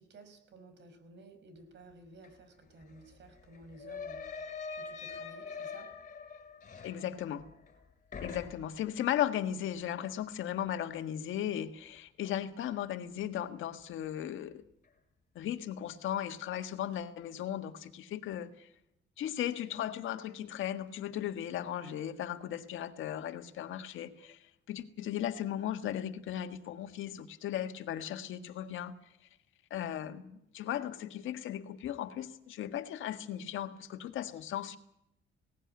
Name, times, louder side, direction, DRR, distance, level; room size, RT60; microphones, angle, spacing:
voice 1, 0.0-4.4 4.8-5.9, right 2 dB, 65° right, 9 dB, 5.4 m, -54 dB
sound 1, 2.2-2.3 2.6-7.8 8.1-8.9, left 5 dB, 40° left, 6.2 m, -44 dB
voice 2, 6.8-7.4 8.2-14.6 15.3-18.7 19.2-28.9 29.7-34.8, left 11 dB, 80° left, 8 dB, 1.7 m, -36 dB
18.0 x 16.5 x 9.8 m, 0.80 s
cardioid pair, 90°, 20 cm